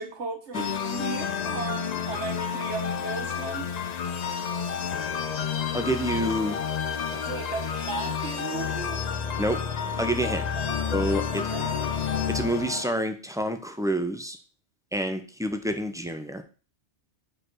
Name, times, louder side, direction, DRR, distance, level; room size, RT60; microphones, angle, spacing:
voice 1, 0.0-3.7 4.6-4.7 7.1-9.0 10.4-10.8 11.3-11.7, right 4 dB, 75° right, 5 dB, 1.6 m, -36 dB
sound 1, 0.5-12.8, left 7 dB, 50° left, 0.5 m, -30 dB
sound 2, 2.5-12.9, left 1 dB, 75° left, 2.1 m, -42 dB
voice 2, 5.7-6.6 7.1-7.2 9.4-9.6 10.0-10.4 10.9-11.5 12.3-14.4 14.9-16.4, equal, 5° right, 6 dB, 0.5 m, -28 dB
4.9 x 4.9 x 6.1 m, 0.35 s
omnidirectional pair, 1.2 m